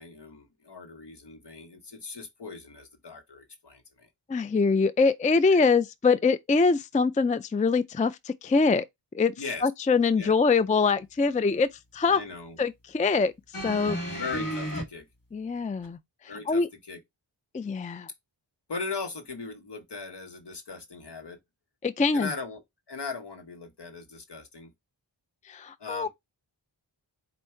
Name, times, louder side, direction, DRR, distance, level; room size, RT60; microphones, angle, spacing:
voice 1, 0.0-4.1 5.5-5.7 9.4-9.6 10.2-10.3 12.0-12.6 14.1-15.1 16.3-17.0 18.7-21.4 22.1-22.6 22.9-24.7 25.8-26.1, left 4 dB, 60° left, 1.3 m, -39 dB
voice 2, 4.3-8.8 9.1-9.3 9.6-11.7 11.9-12.2 12.6-13.3 13.6-14.2 15.3-16.0 16.5-16.7 17.5-18.1 21.8-22.3 25.5-26.1, left 4 dB, 20° left, 0.3 m, -24 dB
sound 1, 13.5-14.8 15.8-15.9, equal, 45° left, 1.7 m, -32 dB
4.5 x 2.6 x 4.4 m
cardioid pair, 40°, 46 cm